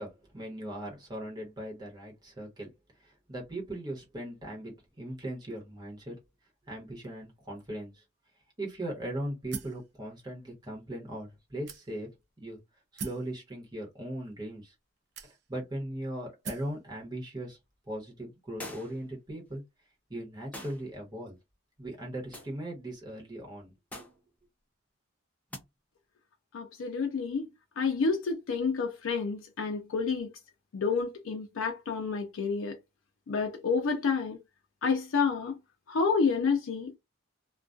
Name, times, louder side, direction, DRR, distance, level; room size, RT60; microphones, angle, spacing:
voice 1, 0.0-2.7 3.0-6.2 6.7-8.0 8.6-12.1 12.4-12.6 12.9-14.7 15.2-17.6 17.9-19.6 20.1-21.4 21.8-24.1, right 1 dB, 20° right, 1.0 m, -39 dB
sound 1, 9.5-9.9 10.6-10.7 11.7-12.2 13.0-13.3 14.2-14.3 15.1-15.7 16.4-16.8, right 5 dB, 50° right, 0.4 m, -41 dB
sound 2, 18.6-19.1 20.5-20.9 22.3-22.6 23.9-24.2 25.5-25.7, left 1 dB, 5° left, 0.4 m, -43 dB
voice 2, 26.5-27.5 27.8-30.3 30.7-32.8 33.3-34.4 34.8-35.6 35.9-37.0, left 5 dB, 70° left, 0.4 m, -29 dB
2.3 x 2.2 x 2.5 m
head